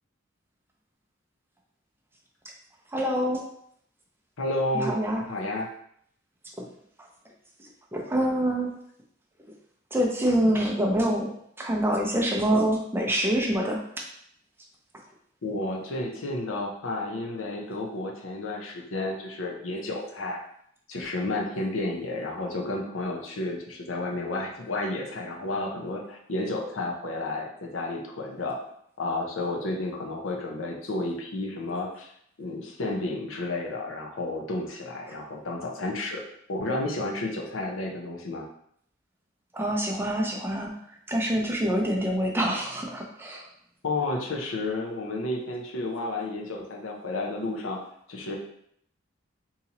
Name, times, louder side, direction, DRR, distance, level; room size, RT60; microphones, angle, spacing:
voice 1, 2.9-3.4 4.7-5.2 6.6-6.7 7.6-8.7 9.9-11.3 11.6-13.8 39.5-40.7 41.1-43.5, right 1 dB, 10° right, 0 dB, 0.5 m, -26 dB
voice 2, 4.4-5.7 15.4-20.4 20.9-28.6 29.0-32.1 32.4-36.2 36.5-38.4 43.8-47.8 48.1-48.4, left 2 dB, 85° left, 0 dB, 0.7 m, -31 dB
3.9 x 2.8 x 2.9 m, 0.69 s
head